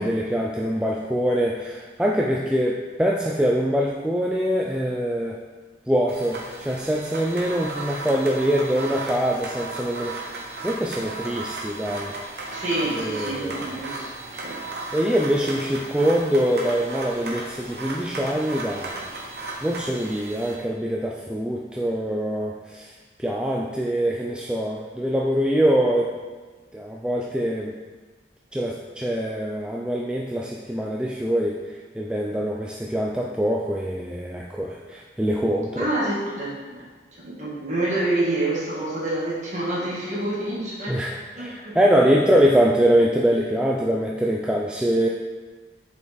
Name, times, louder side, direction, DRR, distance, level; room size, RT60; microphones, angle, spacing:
voice 1, 0.0-5.4 5.9-12.1 12.9-13.7 14.9-19.0 19.6-22.9 23.2-26.2 26.7-27.7 28.5-31.6 31.9-35.9 40.9-45.1, equal, 5° right, -2 dB, 0.3 m, -24 dB
sound 1, 6.1-20.6, right 2 dB, 60° right, 1.1 m, -35 dB
voice 2, 12.5-14.6 35.8-36.8 37.2-41.0 41.4-41.8, right 1 dB, 40° right, -6 dB, 1.7 m, -27 dB
6.4 x 5.4 x 3.4 m, 1.4 s
head